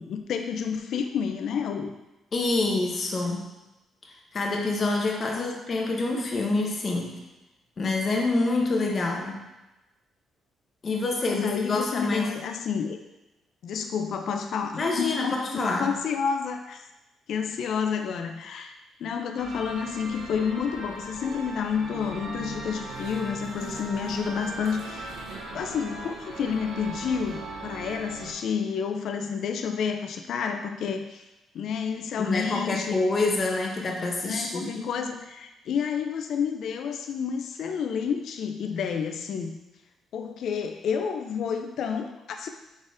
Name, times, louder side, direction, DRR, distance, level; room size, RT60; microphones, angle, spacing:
voice 1, 0.0-1.9 5.3-5.5 11.2-13.0 13.6-16.8 17.3-18.7 19.0-25.1 25.5-31.2 31.5-33.0 34.2-39.6 40.1-42.5, left 6 dB, 70° left, 5 dB, 0.4 m, -30 dB
voice 2, 2.3-3.5 4.3-7.1 7.8-9.4 10.8-12.3 14.8-15.9 32.2-34.9, left 2 dB, 40° left, 0 dB, 0.9 m, -26 dB
sound 1, 19.4-28.3, right 2 dB, 85° right, 0.9 m, -39 dB
4.9 x 3.9 x 2.6 m, 1.0 s
cardioid pair, 90°, 0 cm